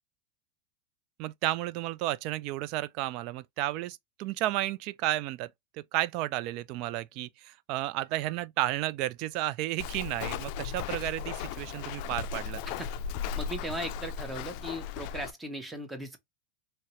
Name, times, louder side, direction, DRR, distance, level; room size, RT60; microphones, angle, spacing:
voice 1, 1.2-5.5 5.9-12.6, right 15 dB, 55° right, 0.3 m, -32 dB
Walk footsteps, 9.8-15.3, left 7 dB, 55° left, 0.4 m, -36 dB
voice 2, 13.4-16.2, right 1 dB, 10° right, 1.1 m, -38 dB
2.8 x 2.8 x 3.1 m
hypercardioid pair, 110°, 0 cm